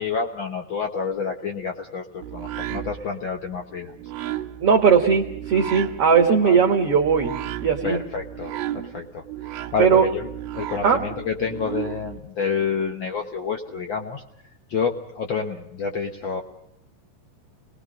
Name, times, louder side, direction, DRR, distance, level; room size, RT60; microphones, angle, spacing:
voice 1, 0.0-3.9 6.4-6.6 7.8-10.3 10.5-14.2 14.7-16.4, left 5 dB, 75° left, 3 dB, 1.1 m, -28 dB
sound 1, 2.2-12.2, right 12 dB, 70° right, 1.8 m, -35 dB
voice 2, 4.6-7.4 7.6-8.0 9.8-10.1 10.8-11.0, right 6 dB, 50° right, 2 dB, 2.1 m, -18 dB
28.5 x 19.5 x 5.1 m, 0.75 s
omnidirectional pair, 4.1 m